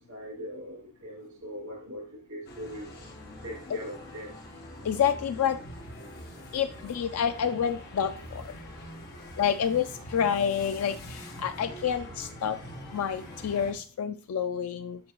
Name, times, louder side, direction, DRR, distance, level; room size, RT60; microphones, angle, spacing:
voice 1, 0.0-2.9 3.4-4.4, equal, 85° right, -8 dB, 3.4 m, -41 dB
sound 1, 2.4-13.7, equal, 45° left, 1.4 m, -44 dB
voice 2, 4.9-5.6 6.5-8.1 9.4-10.9 11.4-12.6 12.9-15.0, left 8 dB, 85° left, 8 dB, 0.4 m, -28 dB
7.3 x 5.3 x 3.0 m, 0.39 s
head